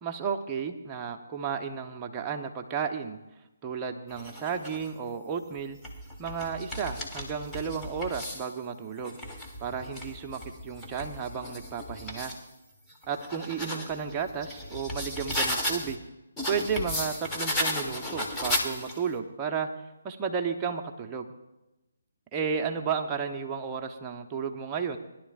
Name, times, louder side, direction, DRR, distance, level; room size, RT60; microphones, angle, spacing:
voice 1, 0.0-3.2 3.6-5.8 6.2-9.2 9.6-12.3 13.1-16.0 16.5-19.7 20.0-21.3 22.3-25.0, right 6 dB, 20° right, 4 dB, 0.9 m, -33 dB
sound 1, 4.1-4.9 5.6-8.5 9.0-12.4 12.9-16.0 16.4-19.1, left 1 dB, 10° left, 1.3 m, -35 dB
20.5 x 11.0 x 2.5 m, 0.98 s
figure-of-eight pair, 145°, 0 cm